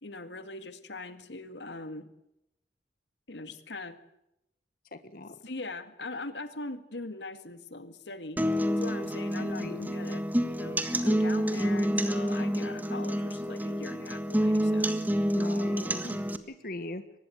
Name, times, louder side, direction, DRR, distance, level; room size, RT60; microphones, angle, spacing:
voice 1, 0.0-2.1 3.3-4.0 5.4-8.4 8.8-14.9, left 2 dB, 85° left, 10 dB, 2.0 m, -41 dB
voice 2, 4.9-5.3 9.4-9.9 15.3-16.2 16.5-17.0, left 1 dB, 55° left, 10 dB, 1.7 m, -40 dB
sound 1, 8.4-16.4, equal, 10° right, 1.6 m, -28 dB
24.0 x 20.0 x 8.1 m, 0.83 s
head